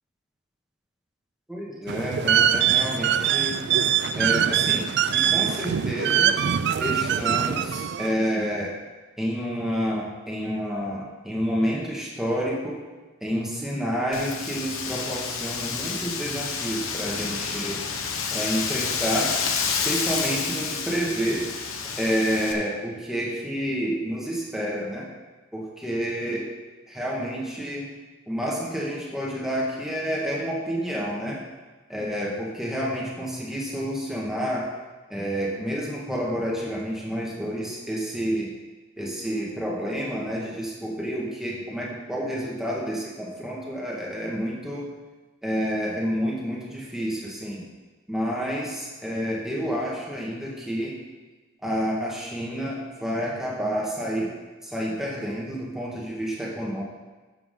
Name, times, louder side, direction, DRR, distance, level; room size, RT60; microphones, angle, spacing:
voice 1, 1.5-3.6 4.1-6.4 6.8-8.8 9.2-12.8 13.2-17.8 18.3-19.4 19.6-21.5 22.0-25.1 25.5-26.5 26.9-27.9 28.3-31.4 31.9-34.7 35.1-38.5 39.0-44.9 45.4-47.6 48.1-51.0 51.6-54.3 54.6-56.8, equal, ahead, -4 dB, 1.8 m, -29 dB
sound 1, 1.9-8.1, right 9 dB, 55° right, 0.4 m, -23 dB
Wind, 14.1-22.5, left 5 dB, 85° left, 1.1 m, -29 dB
12.0 x 7.5 x 3.8 m, 1.3 s
head